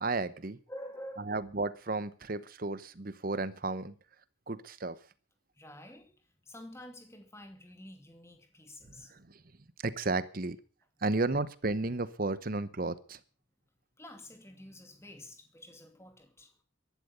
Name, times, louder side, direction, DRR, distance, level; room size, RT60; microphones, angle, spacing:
voice 1, 0.0-0.6 1.3-3.9 4.5-5.0 9.1-9.4 9.8-10.6 11.0-13.2, right 3 dB, 45° right, 0.9 m, -33 dB
voice 2, 0.7-1.4 5.5-9.2 14.0-16.6, left 1 dB, 15° left, 2.5 m, -49 dB
14.5 x 12.0 x 6.8 m
head